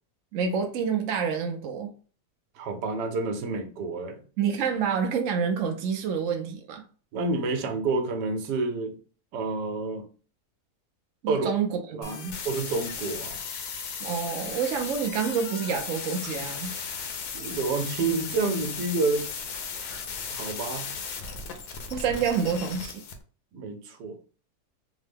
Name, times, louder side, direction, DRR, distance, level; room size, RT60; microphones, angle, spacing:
voice 1, 0.3-1.9 4.4-6.8 11.2-12.4 14.0-16.8 21.9-23.0, right 6 dB, 65° right, 0.8 m, -28 dB
voice 2, 2.6-4.2 7.1-9.0 9.3-10.0 11.3-11.5 11.9-12.2 12.4-13.4 17.3-19.3 20.3-20.9 23.5-24.2, right 3 dB, 85° right, 1.3 m, -29 dB
sound 1, 12.0-23.1, left 6 dB, 75° left, 1.2 m, -36 dB
3.7 x 2.1 x 3.3 m
omnidirectional pair, 1.8 m